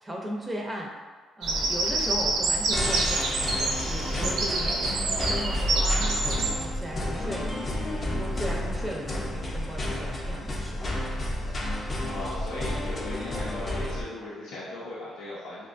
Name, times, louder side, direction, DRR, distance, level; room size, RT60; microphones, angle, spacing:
voice 1, 0.0-1.0 1.4-7.6 7.9-10.8, equal, 20° right, -1 dB, 0.4 m, -37 dB
Bird vocalization bird call bird song, 1.4-6.6, right 2 dB, 80° right, 0.5 m, -27 dB
sound 1, 2.7-14.0, left 1 dB, 35° left, 0.5 m, -31 dB
voice 2, 12.0-15.7, left 2 dB, 90° left, -8 dB, 0.6 m, -38 dB
4.6 x 2.2 x 2.5 m, 1.4 s
cardioid pair, 90°, 0 cm